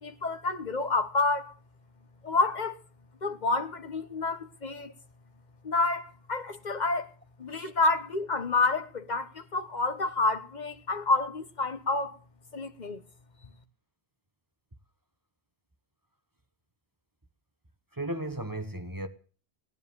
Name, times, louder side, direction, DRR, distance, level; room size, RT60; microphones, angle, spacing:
voice 1, 0.0-1.5 2.2-2.8 3.2-4.9 5.6-7.1 7.4-12.2 12.5-13.0, left 3 dB, 45° left, 1.4 m, -29 dB
voice 2, 17.9-19.1, right 1 dB, 20° right, 1.0 m, -35 dB
18.0 x 10.5 x 7.0 m
omnidirectional pair, 1.1 m